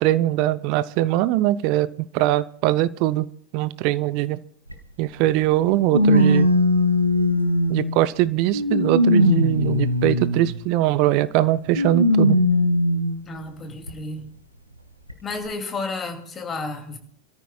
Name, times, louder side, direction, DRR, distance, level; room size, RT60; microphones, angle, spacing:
voice 1, 0.0-3.3 3.5-4.4 5.0-6.5 7.7-12.4, right 15 dB, 45° right, 0.5 m, -21 dB
sound 1, 4.7-4.8 5.9-8.0 8.5-10.6 11.7-13.2 13.9-14.0 15.1-15.2, left 1 dB, 90° right, 1.4 m, -19 dB
voice 2, 13.2-14.3 15.2-17.0, left 3 dB, 20° left, 2.6 m, -32 dB
28.5 x 13.5 x 2.4 m
figure-of-eight pair, 90°, 0 cm